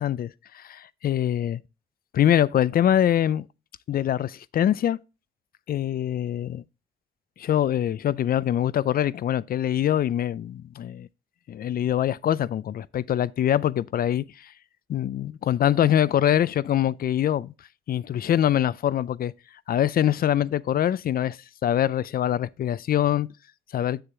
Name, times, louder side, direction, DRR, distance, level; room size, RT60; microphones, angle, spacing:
voice 1, 0.0-1.6 2.1-3.4 3.9-5.0 5.7-6.6 7.4-11.1 11.5-14.2 14.9-17.5 17.9-19.3 19.7-21.4 21.6-23.3 23.7-24.0, left 11 dB, 50° left, 0.4 m, -24 dB
7.2 x 6.8 x 3.4 m
cardioid pair, 90°, 20 cm